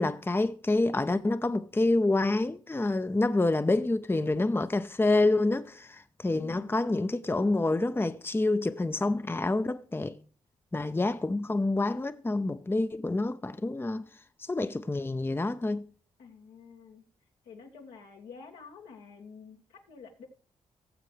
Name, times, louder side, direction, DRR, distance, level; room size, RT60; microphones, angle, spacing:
voice 1, 0.0-10.2 10.7-14.1 14.5-15.8, left 2 dB, 15° left, 0.7 m, -27 dB
voice 2, 6.3-6.8 16.2-17.0 17.5-20.3, left 5 dB, 85° left, 1.9 m, -49 dB
17.5 x 7.5 x 3.2 m
hypercardioid pair, 45°, 14 cm